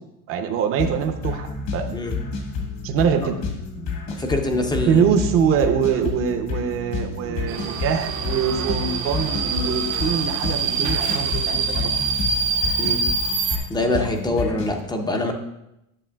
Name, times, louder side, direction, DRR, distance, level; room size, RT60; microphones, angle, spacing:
voice 1, 0.3-2.0 2.8-3.4 4.9-12.0, right 7 dB, 35° right, 5 dB, 0.6 m, -23 dB
sound 1, 0.8-14.8, left 4 dB, 60° left, 1.6 m, -30 dB
voice 2, 4.2-5.0 12.8-13.0 13.7-15.3, left 2 dB, 10° left, 4 dB, 0.5 m, -24 dB
Subway metro underground, 7.5-13.6, right 5 dB, 80° right, 1.1 m, -25 dB
9.9 x 6.9 x 2.3 m, 0.87 s
cardioid pair, 140°, 40 cm